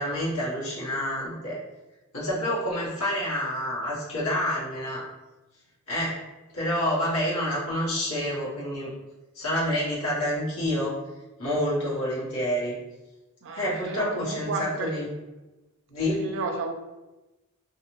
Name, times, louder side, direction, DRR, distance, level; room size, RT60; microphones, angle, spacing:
voice 1, 0.0-1.6 2.1-5.0 5.9-6.2 6.5-8.9 9.3-10.9 11.4-12.8 13.5-15.1 15.9-16.2, equal, 70° left, -6 dB, 1.1 m, -28 dB
voice 2, 13.4-14.9 16.2-16.7, right 3 dB, 60° right, 4 dB, 0.4 m, -32 dB
2.5 x 2.3 x 3.0 m, 1.0 s
head